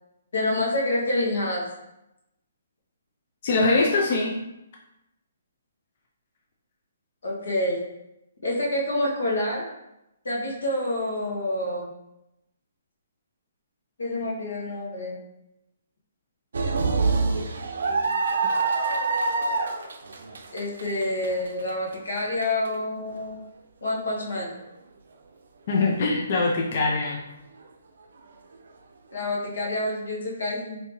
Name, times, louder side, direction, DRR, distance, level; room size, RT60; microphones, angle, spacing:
voice 1, 0.3-1.7 7.2-7.8 8.4-9.6 10.2-11.9 14.0-15.2 20.5-23.4 23.8-24.5 29.1-30.8, left 1 dB, 90° left, -2 dB, 1.1 m, -27 dB
voice 2, 3.4-4.3 25.7-27.2, left 3 dB, 40° left, -1 dB, 0.4 m, -22 dB
sound 1, 16.5-22.7 23.2-23.3 24.4-24.6, right 4 dB, 70° right, 0.4 m, -26 dB
3.4 x 2.7 x 3.0 m, 0.87 s
hypercardioid pair, 170°, 0 cm